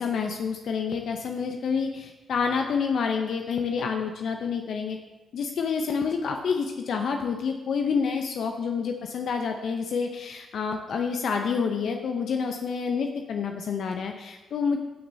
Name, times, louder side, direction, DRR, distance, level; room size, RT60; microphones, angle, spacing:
voice 1, 0.0-5.0 5.3-14.8, left 5 dB, 70° left, 4 dB, 0.6 m, -28 dB
13.0 x 6.2 x 2.7 m, 1.1 s
supercardioid pair, 50°, 0 cm